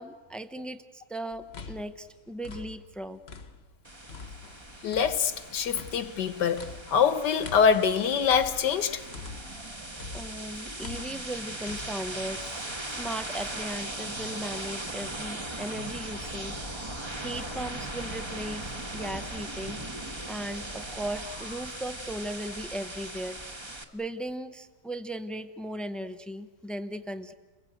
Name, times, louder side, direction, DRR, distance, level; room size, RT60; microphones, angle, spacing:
voice 1, 0.0-3.2 10.1-16.6 17.2-19.8 20.3-23.4 23.9-27.3, right 1 dB, ahead, 0.3 m, -37 dB
sound 1, 1.3-3.8 4.1-9.7 10.0-11.9, left 4 dB, 40° left, 1.3 m, -44 dB
sound 2, 3.8-23.8, right 1 dB, 15° right, 1.4 m, -39 dB
voice 2, 4.8-9.0, left 7 dB, 80° left, 1.8 m, -25 dB
29.5 x 22.0 x 7.9 m
omnidirectional pair, 1.8 m